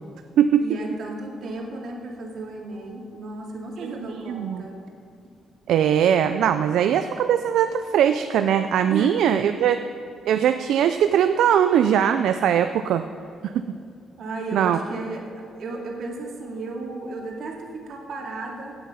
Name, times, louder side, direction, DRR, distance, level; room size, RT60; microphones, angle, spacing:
voice 1, 0.6-4.7 8.9-9.6 14.2-18.7, right 3 dB, 70° right, 0 dB, 2.2 m, -34 dB
voice 2, 4.3-4.7 5.7-9.8 10.3-13.0 14.5-14.8, right 9 dB, 85° right, 9 dB, 0.4 m, -20 dB
17.0 x 7.1 x 5.6 m, 2.4 s
cardioid pair, 110°, 0 cm